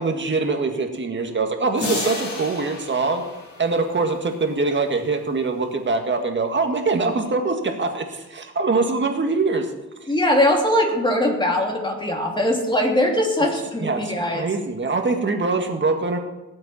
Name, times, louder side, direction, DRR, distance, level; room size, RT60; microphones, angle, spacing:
voice 1, 0.0-3.2 3.6-9.7 13.8-16.2, right 3 dB, 35° right, 4 dB, 1.9 m, -23 dB
sound 1, 1.8-4.3, left 3 dB, 65° left, 3.8 m, -31 dB
voice 2, 10.1-14.5, left 1 dB, 15° left, 1 dB, 2.8 m, -21 dB
18.5 x 7.9 x 4.3 m, 1.0 s
cardioid pair, 95°, 32 cm